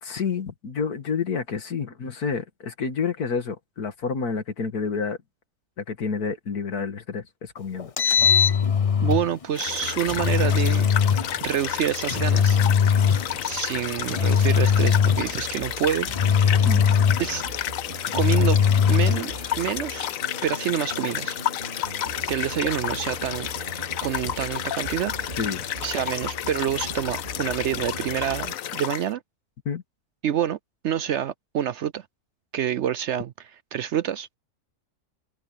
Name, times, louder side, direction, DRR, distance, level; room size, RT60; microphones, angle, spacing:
voice 1, 0.0-5.2 5.8-7.9 16.6-16.9 25.4-25.6 29.7-29.8, left 5 dB, 85° left, 2.4 m, -29 dB
Engine, 7.8-9.3 10.1-11.3 12.1-13.4 14.1-15.4 16.1-17.4 18.1-19.3, left 7 dB, 50° left, 0.4 m, -20 dB
voice 2, 9.0-10.9 11.4-12.6 13.4-16.6 17.2-17.4 18.1-18.6 18.9-19.3 19.6-20.1 20.4-21.4 22.3-23.5 24.0-25.1 25.8-29.2 30.2-30.6 30.8-32.0 32.5-34.4, right 10 dB, 65° right, 0.7 m, -27 dB
sound 1, 9.5-29.1, left 11 dB, 65° left, 1.1 m, -31 dB
sound 2, 9.7-28.6, right 2 dB, 40° right, 3.3 m, -41 dB
omnidirectional pair, 1.6 m